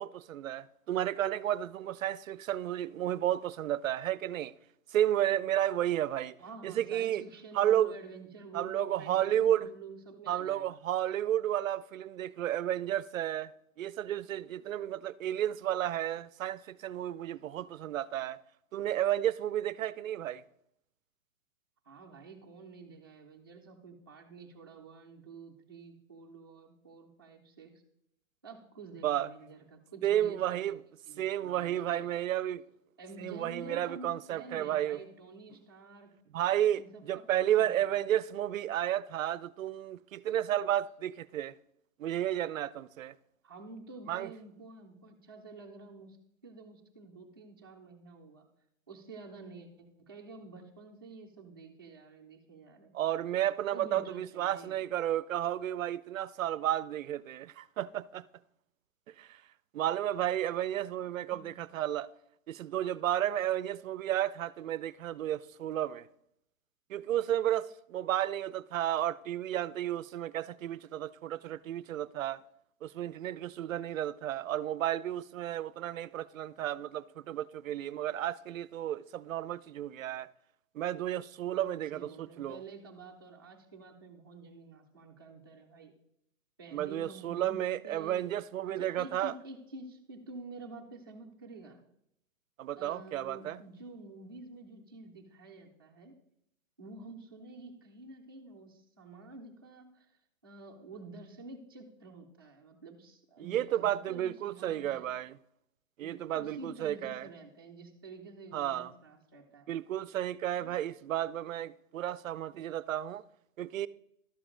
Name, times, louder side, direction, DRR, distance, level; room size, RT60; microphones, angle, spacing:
voice 1, 0.0-4.5 4.9-6.3 6.6-7.2 7.5-7.9 8.5-9.7 10.3-13.5 13.8-18.4 18.7-20.4 29.0-29.3 30.0-30.8 31.2-32.6 33.2-35.0 36.3-41.5 42.0-43.1 44.1-44.3 52.9-58.2 59.2-59.4 59.7-62.1 62.5-66.1 66.9-72.4 72.8-80.3 80.7-82.6 86.7-89.3 92.6-93.6 103.4-105.4 106.0-107.3 108.5-108.9 109.7-113.2 113.6-113.9, right 12 dB, 70° right, 0.5 m, -32 dB
voice 2, 6.4-10.8 21.8-27.7 28.4-30.7 31.1-32.1 33.0-36.1 36.7-38.0 43.4-46.2 46.4-48.4 48.9-52.9 53.7-54.8 61.2-61.4 81.5-85.9 86.6-88.3 88.7-91.8 92.7-96.1 96.8-100.1 100.4-105.1 106.0-109.7 110.6-110.7, right 3 dB, 15° right, 0.5 m, -49 dB
12.5 x 7.1 x 3.7 m
hypercardioid pair, 175°, 41 cm